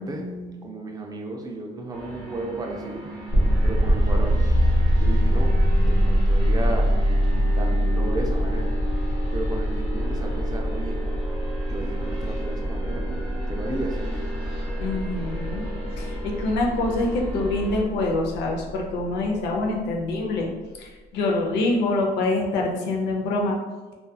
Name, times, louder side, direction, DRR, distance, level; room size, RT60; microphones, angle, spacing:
voice 1, 0.0-0.6 14.8-15.7 15.9-20.5 20.8-23.6, left 2 dB, 90° left, 0 dB, 0.5 m, -26 dB
voice 2, 0.6-3.1 3.6-4.5 5.0-5.5 5.8-6.9 7.5-8.8 9.3-11.0 11.7-14.1, right 2 dB, 25° right, 1 dB, 0.4 m, -33 dB
sound 1, 1.9-17.8, equal, 5° left, 1.2 m, -38 dB
sound 2, 3.3-20.2, equal, 40° left, 0.9 m, -24 dB
2.7 x 2.4 x 2.2 m, 1.3 s
cardioid pair, 110°, 17 cm